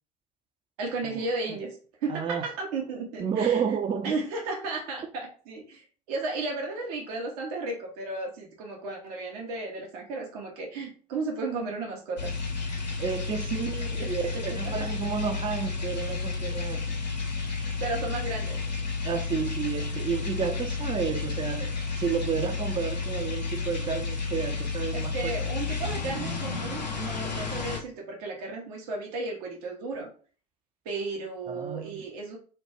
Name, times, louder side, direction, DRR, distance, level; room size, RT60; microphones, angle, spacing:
voice 1, 0.8-1.8 2.0-3.6 4.0-12.3 13.5-13.7 14.0-14.1 14.6-14.9 17.8-18.6 24.9-30.1 30.9-32.4, right 3 dB, 65° right, 0.7 m, -34 dB
voice 2, 2.1-2.5 3.2-4.2 13.0-17.0 19.0-25.4 31.5-32.1, right 7 dB, 25° right, 0.4 m, -31 dB
sound 1, 12.2-27.8, left 4 dB, 85° left, 0.5 m, -31 dB
2.2 x 2.1 x 2.8 m
figure-of-eight pair, 60°, 21 cm